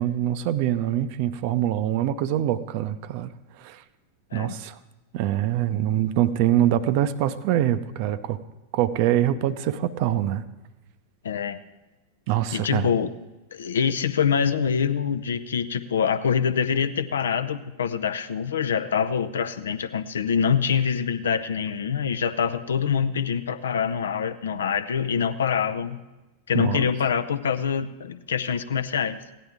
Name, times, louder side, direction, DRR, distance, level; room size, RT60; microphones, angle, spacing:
voice 1, 0.0-3.3 3.6-3.8 4.3-4.8 5.1-8.4 8.7-10.4 12.3-12.9 26.5-26.8, right 12 dB, 45° right, 13 dB, 0.6 m, -24 dB
voice 2, 11.2-11.6 12.5-13.1 13.5-26.0 26.5-29.2, left 7 dB, 65° left, 13 dB, 0.6 m, -25 dB
16.5 x 10.0 x 3.6 m, 1.1 s
figure-of-eight pair, 90°, 0 cm